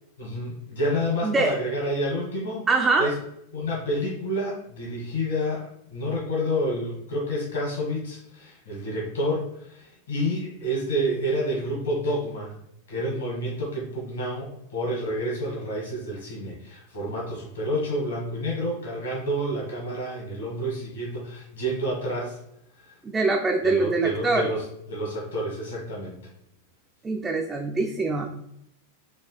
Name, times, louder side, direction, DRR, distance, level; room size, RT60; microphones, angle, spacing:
voice 1, 0.2-2.7 3.0-3.2 3.5-12.5 12.9-22.4 22.9-23.0 23.6-26.1, equal, 65° left, -3 dB, 1.4 m, -29 dB
voice 2, 1.2-1.6 2.7-3.1 23.0-24.5 27.0-28.3, right 3 dB, 15° right, 2 dB, 0.3 m, -23 dB
4.2 x 2.7 x 2.3 m, 0.78 s
figure-of-eight pair, 90°, 0 cm